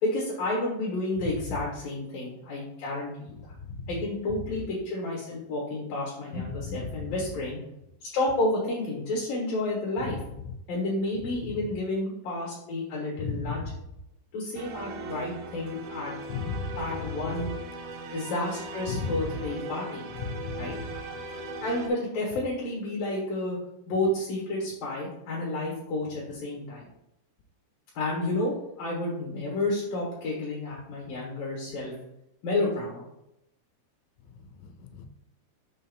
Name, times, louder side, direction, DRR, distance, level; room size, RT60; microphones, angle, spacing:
voice 1, 0.0-3.5 3.9-7.6 8.0-10.2 10.7-13.6 14.3-16.1 16.8-17.5 18.1-20.0 20.6-20.7 21.6-23.6 23.9-26.9 27.9-31.9 32.4-33.0, left 2 dB, 60° left, -4 dB, 2.7 m, -30 dB
voice 2, 13.2-13.7 16.3-16.8 18.9-19.3 20.2-20.9 34.6-35.1, left 4 dB, 90° left, 7 dB, 3.0 m, -34 dB
sound 1, 14.6-21.9, right 2 dB, 85° right, 2.5 m, -39 dB
7.0 x 2.8 x 5.4 m, 0.86 s
omnidirectional pair, 5.3 m